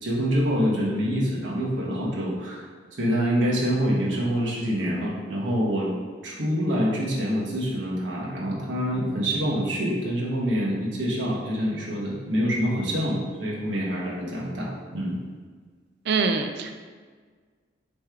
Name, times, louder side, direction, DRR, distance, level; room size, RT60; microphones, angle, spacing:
voice 1, 0.0-2.6 3.0-5.9 6.2-15.2, equal, 90° right, -5 dB, 1.1 m, -26 dB
voice 2, 16.1-16.7, right 4 dB, 65° right, 6 dB, 0.4 m, -24 dB
3.5 x 3.3 x 4.5 m, 1.5 s
head